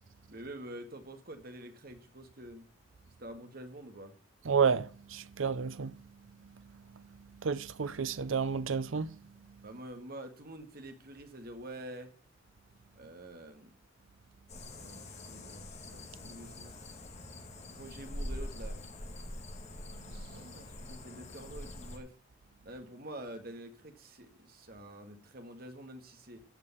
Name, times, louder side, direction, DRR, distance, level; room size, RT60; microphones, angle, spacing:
voice 1, 0.3-2.7 3.2-4.1 9.6-12.1 13.0-13.7 14.6-16.7 17.8-18.8 20.3-22.1 22.6-26.4, right 1 dB, 50° right, 1.9 m, -47 dB
voice 2, 4.5-5.9 7.4-9.1, right 6 dB, 80° right, 0.6 m, -30 dB
sound 1, 14.5-22.0, left 1 dB, 35° left, 2.0 m, -44 dB
15.0 x 5.4 x 7.1 m
head